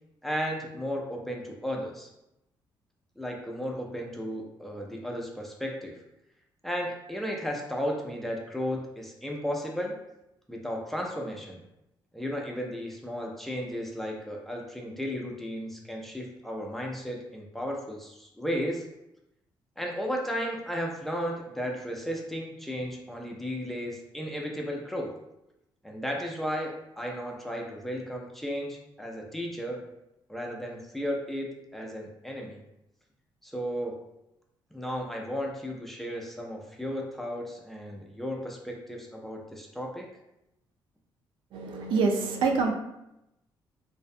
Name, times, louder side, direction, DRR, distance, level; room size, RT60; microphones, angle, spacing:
voice 1, 0.2-2.1 3.2-6.0 6.6-10.0 10.5-11.6 12.1-18.9 19.8-25.1 25.8-29.8 30.3-32.6 33.4-34.0 34.7-40.1, equal, ahead, -1 dB, 0.4 m, -34 dB
voice 2, 41.5-42.7, right 4 dB, 85° right, 3 dB, 0.4 m, -26 dB
2.6 x 2.1 x 2.5 m, 0.87 s
cardioid pair, 135°, 8 cm